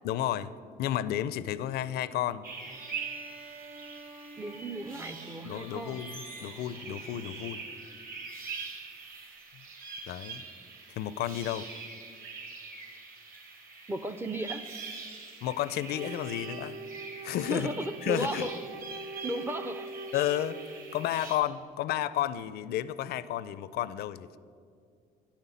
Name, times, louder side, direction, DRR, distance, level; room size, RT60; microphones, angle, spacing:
voice 1, 0.0-0.5 0.8-2.5 5.4-7.6 9.5-9.6 10.1-10.4 10.9-11.7 15.4-16.8 17.2-17.7 18.0-18.5 20.1-20.6 20.9-24.4, left 12 dB, 70° left, 16 dB, 0.4 m, -32 dB
sound 1, 2.4-21.4, right 5 dB, 55° right, 2.2 m, -44 dB
sound 2, 2.7-7.9, right 2 dB, 35° right, 1.2 m, -49 dB
voice 2, 4.4-6.0 13.9-14.7 17.5-18.6 19.2-19.9, right 1 dB, 15° right, 9 dB, 0.4 m, -35 dB
Wind instrument woodwind instrument, 15.9-21.0, right 2 dB, 85° right, 0.6 m, -43 dB
10.5 x 5.8 x 8.3 m, 2.2 s
cardioid pair, 110°, 17 cm